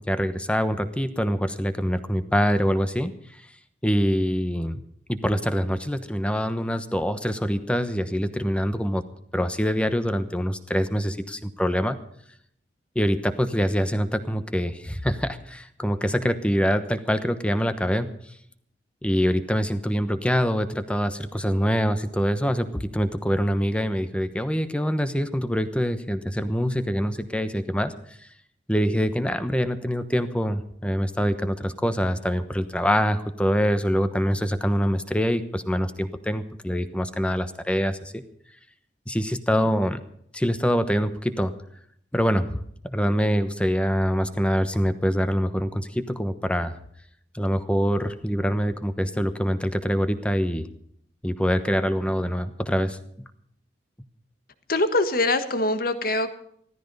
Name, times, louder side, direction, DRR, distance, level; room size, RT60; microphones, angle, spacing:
voice 1, 0.0-3.1 3.8-4.8 5.1-9.0 9.3-12.0 12.9-18.1 19.0-27.9 28.7-38.2 39.1-40.0 40.3-41.5 42.1-46.7 47.3-50.7 51.2-53.0, equal, 5° left, 10 dB, 1.0 m, -25 dB
voice 2, 54.7-56.3, left 2 dB, 55° left, 10 dB, 1.5 m, -23 dB
15.5 x 14.0 x 5.5 m, 0.67 s
head